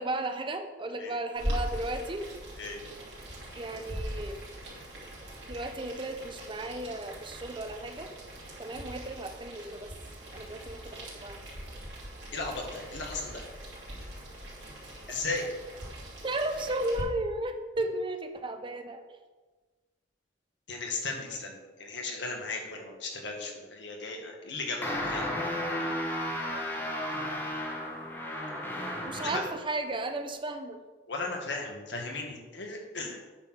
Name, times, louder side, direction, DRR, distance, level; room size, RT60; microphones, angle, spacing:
voice 1, 0.0-2.3 3.5-4.4 5.5-8.1 8.6-9.9 10.3-11.4 15.1-15.2 16.2-19.0 29.0-30.8, right 2 dB, 30° right, 6 dB, 0.6 m, -34 dB
Boiling, 1.3-17.0, equal, 70° right, 2.7 m, -41 dB
sound 1, 3.9-5.8, equal, 70° left, 1.8 m, -41 dB
voice 2, 12.3-13.4 14.0-14.1 15.1-15.4 20.7-25.4 25.6-25.8 29.2-29.5 31.1-33.2, left 3 dB, 85° left, 1 dB, 1.6 m, -36 dB
sound 2, 24.8-29.6, left 1 dB, 10° left, 1.2 m, -33 dB
8.7 x 3.9 x 6.2 m, 1.3 s
head